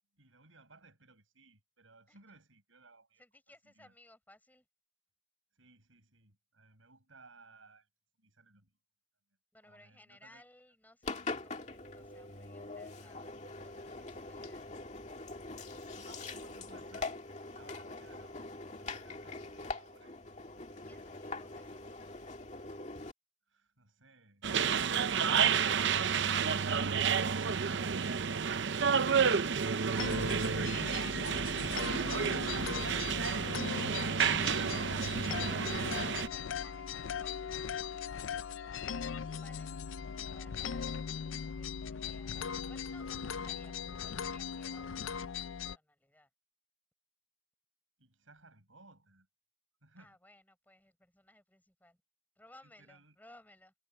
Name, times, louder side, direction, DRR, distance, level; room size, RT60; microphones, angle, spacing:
voice 1, 0.1-3.2 3.6-3.9 5.5-7.9 8.2-8.7 9.6-10.4 15.9-17.2 17.5-18.5 18.8-20.2 20.9-21.1 23.5-24.5 48.0-49.3 49.8-50.2 52.6-53.2, right 3 dB, 85° right, 7.1 m, -60 dB
voice 2, 2.1-2.4 3.2-4.7 9.5-13.4 13.6-14.7 20.7-21.9 35.4-39.8 40.3-40.8 41.6-45.3 45.6-46.3 50.0-52.0 52.4-53.7, left 1 dB, 10° left, 6.1 m, -61 dB
Engine, 11.0-23.1, left 3 dB, 35° left, 2.3 m, -43 dB
sound 1, 24.4-36.3, right 6 dB, 65° right, 0.6 m, -30 dB
sound 2, 30.0-45.8, left 7 dB, 80° left, 0.5 m, -39 dB
head